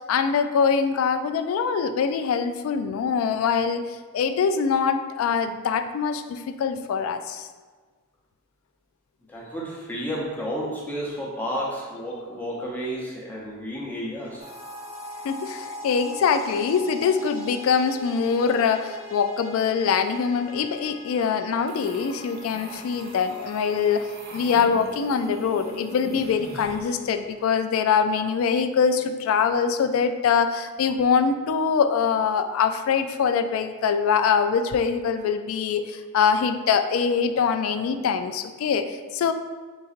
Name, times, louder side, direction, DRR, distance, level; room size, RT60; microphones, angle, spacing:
voice 1, 0.0-7.5 15.2-24.1 24.3-39.3, left 6 dB, 80° left, 11 dB, 0.3 m, -23 dB
voice 2, 9.3-14.5, equal, 10° left, -5 dB, 0.8 m, -31 dB
sound 1, 14.4-27.4, left 2 dB, 30° right, 0.9 m, -42 dB
sound 2, 21.7-27.0, right 2 dB, 50° right, 0.5 m, -41 dB
4.0 x 3.8 x 2.5 m, 1.4 s
head